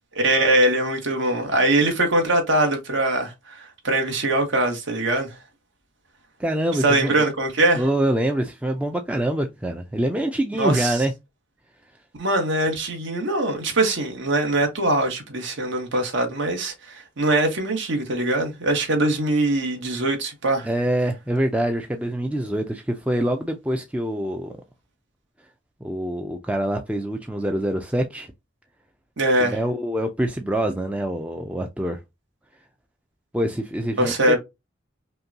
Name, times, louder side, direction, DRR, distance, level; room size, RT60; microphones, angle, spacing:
voice 1, 0.2-5.3 6.8-7.8 10.6-11.0 12.2-20.7 29.2-29.6 34.0-34.4, right 1 dB, 65° right, 1.3 m, -22 dB
voice 2, 6.4-7.3 7.7-11.1 20.6-24.5 25.8-28.3 29.4-32.0 33.3-34.4, right 1 dB, 5° right, 0.4 m, -25 dB
5.3 x 2.2 x 2.7 m
head